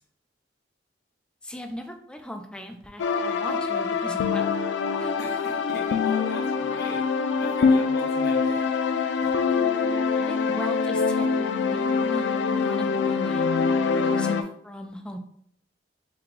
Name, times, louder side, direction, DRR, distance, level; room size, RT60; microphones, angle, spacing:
voice 1, 1.4-4.5 5.0-5.1 10.1-13.5 14.1-15.2, equal, 5° left, 4 dB, 0.4 m, -38 dB
sound 1, 3.0-14.4, left 5 dB, 80° left, 0.3 m, -24 dB
voice 2, 5.2-7.1 7.4-8.7 9.2-9.5, left 2 dB, 65° left, -2 dB, 1.1 m, -41 dB
4.6 x 2.2 x 3.7 m, 0.68 s
head